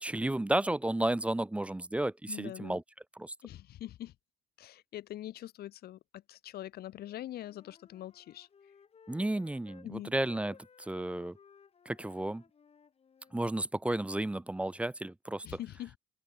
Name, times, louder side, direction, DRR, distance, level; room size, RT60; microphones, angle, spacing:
voice 1, 0.0-2.8 3.1-3.3 9.1-11.4 11.9-12.4 13.3-15.6, right 1 dB, 5° right, 0.5 m, -33 dB
voice 2, 2.3-2.8 3.4-4.1 4.6-8.5 9.8-10.1 15.4-16.0, left 13 dB, 65° left, 3.1 m, -43 dB
Wind instrument woodwind instrument, 7.0-9.9 10.2-13.5, left 6 dB, 35° left, 4.8 m, -59 dB
open air
cardioid pair, 110°, 17 cm